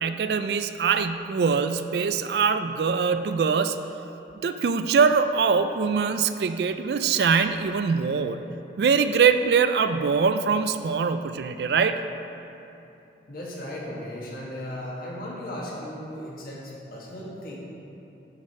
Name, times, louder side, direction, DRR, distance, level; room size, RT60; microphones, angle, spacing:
voice 1, 0.0-3.8 4.4-8.4 8.8-12.0, right 5 dB, 60° right, 10 dB, 0.3 m, -23 dB
voice 2, 13.3-17.6, left 1 dB, 55° left, -5 dB, 1.7 m, -36 dB
10.5 x 5.0 x 4.2 m, 2.9 s
head